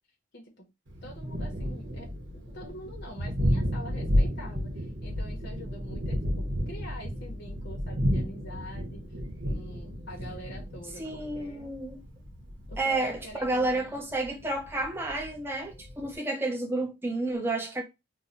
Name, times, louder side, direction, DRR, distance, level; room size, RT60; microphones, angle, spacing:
voice 1, 0.3-0.7 1.0-2.1 2.5-9.1 9.4-11.7 12.7-14.0, equal, 60° left, 0.9 m, -45 dB
Thunder, 0.9-16.2, equal, 85° right, 1.1 m, -32 dB
voice 2, 11.0-12.0 12.8-17.8, right 2 dB, 10° right, 0.6 m, -30 dB
3.1 x 2.2 x 3.9 m
head